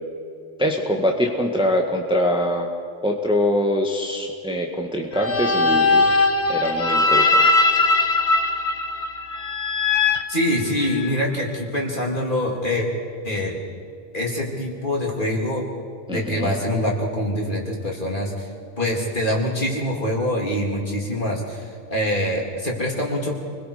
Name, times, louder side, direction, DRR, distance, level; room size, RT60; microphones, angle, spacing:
voice 1, 0.6-2.7 3.0-6.1 6.5-7.5 16.1-16.6, equal, 5° right, 1 dB, 1.6 m, -23 dB
sound 1, 5.1-11.2, left 3 dB, 60° left, 1.5 m, -20 dB
voice 2, 10.3-12.9 13.2-13.6 14.1-15.6 16.1-18.5 18.8-23.3, left 1 dB, 40° left, -2 dB, 3.8 m, -24 dB
28.5 x 21.5 x 5.1 m, 2.3 s
omnidirectional pair, 1.3 m